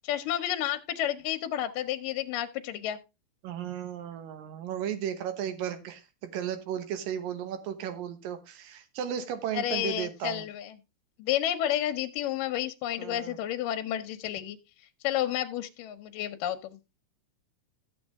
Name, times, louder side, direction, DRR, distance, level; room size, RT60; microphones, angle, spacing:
voice 1, 0.0-3.0 9.5-10.7 11.2-14.6 15.0-16.8, left 12 dB, 75° left, 7 dB, 2.3 m, -31 dB
voice 2, 3.4-10.5 13.0-13.4, right 9 dB, 75° right, 9 dB, 2.9 m, -35 dB
13.5 x 7.1 x 3.5 m, 0.26 s
omnidirectional pair, 4.0 m